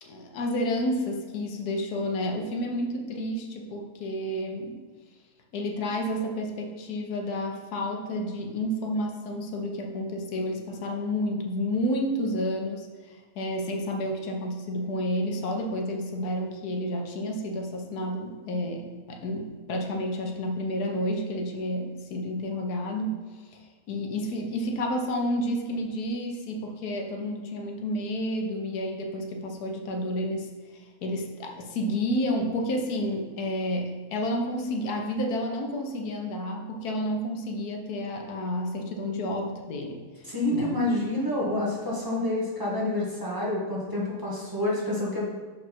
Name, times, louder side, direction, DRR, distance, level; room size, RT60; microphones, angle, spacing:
voice 1, 0.0-4.8 5.5-23.2 23.5-23.6 23.9-40.8, left 1 dB, 90° left, 2 dB, 1.4 m, -30 dB
voice 2, 40.2-45.2, left 1 dB, 15° right, -6 dB, 1.3 m, -28 dB
6.1 x 4.7 x 4.4 m, 1.5 s
omnidirectional pair, 1.6 m